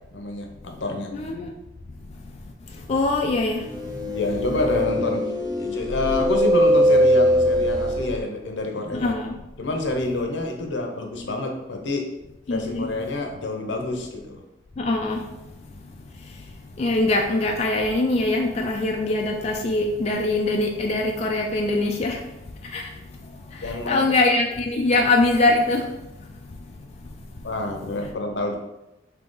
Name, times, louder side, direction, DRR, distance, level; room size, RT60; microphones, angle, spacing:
voice 1, 0.1-1.1 4.1-5.3 5.6-9.1 9.6-12.0 12.5-14.4 23.6-24.0 27.4-28.6, left 2 dB, 80° left, 3 dB, 0.7 m, -27 dB
voice 2, 1.1-1.5 2.0-4.0 8.9-9.4 12.5-12.9 14.8-27.5, left 2 dB, 35° left, 1 dB, 0.3 m, -24 dB
sound 1, 3.5-8.2, equal, 20° right, 0.6 m, -21 dB
3.9 x 2.8 x 3.7 m, 0.94 s
head